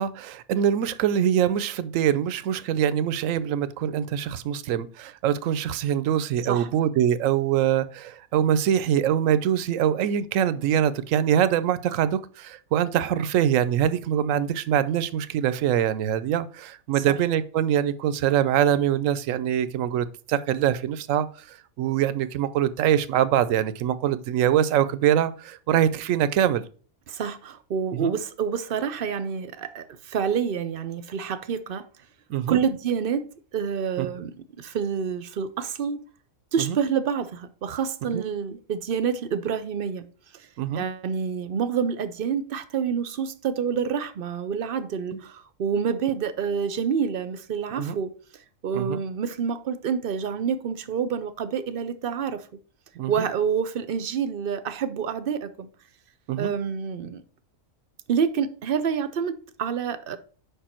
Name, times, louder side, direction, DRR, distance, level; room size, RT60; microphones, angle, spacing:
voice 1, 0.0-26.6 27.9-28.1 32.3-32.6 34.0-34.1 36.6-36.8 38.1-38.2 40.6-40.8 45.1-45.2 47.8-48.0 48.7-49.0 53.0-53.3 56.3-56.5, right 10 dB, 75° right, 1.0 m, -24 dB
voice 2, 27.1-31.9 32.5-33.3 33.5-34.3 34.6-36.0 36.5-40.0 40.8-48.1 48.6-52.4 53.1-55.7 56.4-57.2 58.1-60.2, right 7 dB, 55° right, 0.7 m, -27 dB
6.8 x 5.3 x 4.4 m
omnidirectional pair, 1.4 m